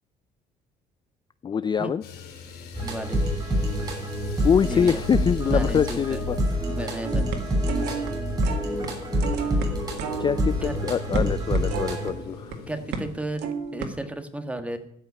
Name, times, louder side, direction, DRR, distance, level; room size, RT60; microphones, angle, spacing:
voice 1, 1.4-2.0 4.4-6.4 10.2-12.5, left 7 dB, 25° left, 14 dB, 0.4 m, -24 dB
sound 1, 2.0-13.2, left 5 dB, 75° left, 3.8 m, -42 dB
sound 2, 2.7-12.1, equal, 25° right, 6.7 m, -27 dB
voice 2, 2.8-3.2 4.7-5.0 5.4-6.2 6.7-7.2 10.6-10.7 12.7-14.8, right 1 dB, 5° right, 7 dB, 1.5 m, -34 dB
sound 3, 7.0-8.1 8.4-8.9 9.2-12.6 12.9-13.1 13.4-13.9, right 6 dB, 85° right, 1.8 m, -32 dB
13.5 x 5.6 x 9.5 m, 0.68 s
cardioid pair, 110°, 17 cm